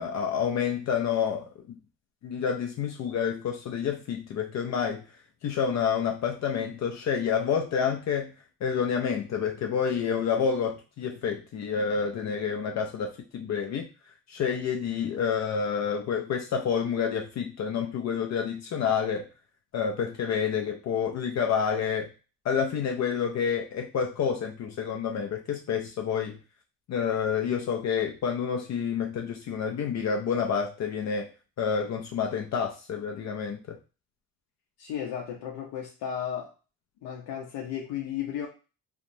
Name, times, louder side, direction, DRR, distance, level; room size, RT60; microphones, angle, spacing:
voice 1, 0.0-1.8 2.2-5.0 5.4-8.3 8.6-13.9 14.3-19.3 19.7-22.1 22.4-26.4 26.9-31.3 31.6-33.8, left 7 dB, 50° left, 3 dB, 0.5 m, -28 dB
voice 2, 34.8-36.5 37.0-38.5, left 9 dB, 90° left, -1 dB, 0.7 m, -34 dB
2.8 x 2.2 x 2.6 m, 0.33 s
cardioid pair, 110°, 36 cm